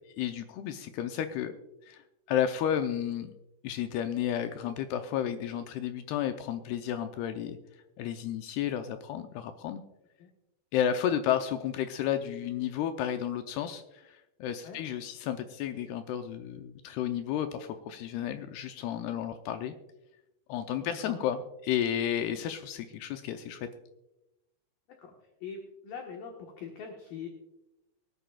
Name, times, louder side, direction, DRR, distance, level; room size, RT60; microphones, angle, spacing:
voice 1, 0.2-1.5 1.9-2.0 2.3-3.3 3.6-7.6 8.0-9.8 10.7-19.8 20.5-23.7, left 10 dB, 85° left, 7 dB, 2.4 m, -32 dB
voice 2, 20.8-21.2 25.0-25.1 25.4-27.3, left 6 dB, 65° left, 1 dB, 2.7 m, -42 dB
23.5 x 10.0 x 2.3 m, 0.93 s
omnidirectional pair, 5.2 m